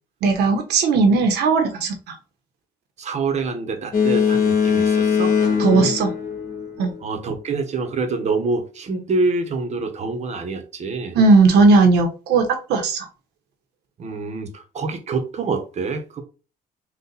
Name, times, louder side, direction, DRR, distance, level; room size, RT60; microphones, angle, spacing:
voice 1, 0.2-2.1 5.6-6.1 6.8-6.9 11.1-13.1, right 3 dB, 75° right, 1.2 m, -17 dB
voice 2, 3.0-5.4 5.7-5.9 7.0-11.2 14.0-16.2, right 3 dB, 40° right, 1.0 m, -26 dB
Boat Water vehicle, 3.9-7.1, left 7 dB, 55° left, 1.6 m, -20 dB
4.2 x 2.5 x 4.0 m
cardioid pair, 110°, 17 cm